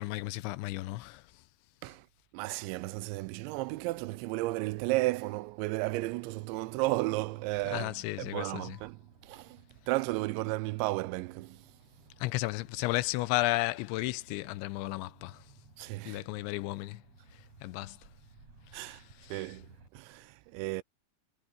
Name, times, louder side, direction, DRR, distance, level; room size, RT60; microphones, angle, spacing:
voice 1, 0.0-1.4 7.7-8.8 12.2-15.5 16.1-17.0 17.3-18.0 18.7-19.5, left 19 dB, 85° left, 3.0 m, -34 dB
voice 2, 2.3-11.7 15.8-16.2 18.7-19.0 19.3-20.8, right 20 dB, 90° right, 2.9 m, -34 dB
Motor vehicle (road), 5.9-19.9, right 3 dB, 35° right, 7.7 m, -59 dB
omnidirectional pair, 5.2 m